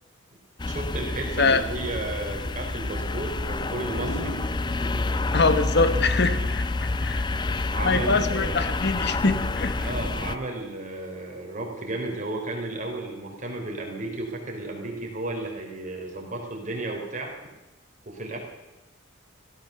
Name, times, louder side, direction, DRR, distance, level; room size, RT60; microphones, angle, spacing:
sound 1, 0.6-10.4, left 2 dB, 20° left, 0.4 m, -28 dB
voice 1, 0.7-5.1 7.7-8.6 9.8-17.3 18.1-18.4, right 2 dB, 35° right, 0 dB, 3.6 m, -33 dB
sound 2, 3.0-5.6, equal, 80° left, 4.2 m, -39 dB
voice 2, 5.3-7.3 7.5-9.9, left 3 dB, 50° left, 11 dB, 1.1 m, -24 dB
16.0 x 13.5 x 6.7 m, 1.0 s
head